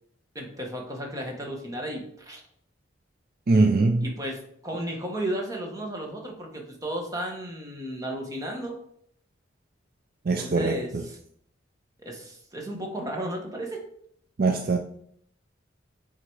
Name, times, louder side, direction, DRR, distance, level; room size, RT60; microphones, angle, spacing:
voice 1, 0.3-2.4 4.0-8.8 10.4-11.2 12.0-13.8, right 1 dB, 20° right, 1 dB, 1.3 m, -34 dB
voice 2, 3.5-4.1 10.3-11.0 14.4-14.8, right 3 dB, 50° right, 5 dB, 0.5 m, -22 dB
8.0 x 3.8 x 4.7 m, 0.68 s
head